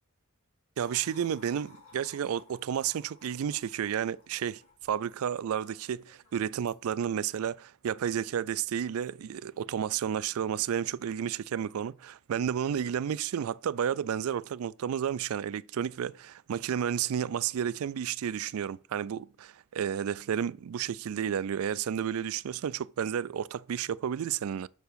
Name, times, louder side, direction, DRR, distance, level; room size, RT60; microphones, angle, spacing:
sound 1, 0.8-6.8, left 3 dB, 85° left, 2.8 m, -57 dB
voice 1, 0.8-24.7, right 8 dB, 70° right, 0.3 m, -32 dB
6.5 x 4.6 x 6.8 m
head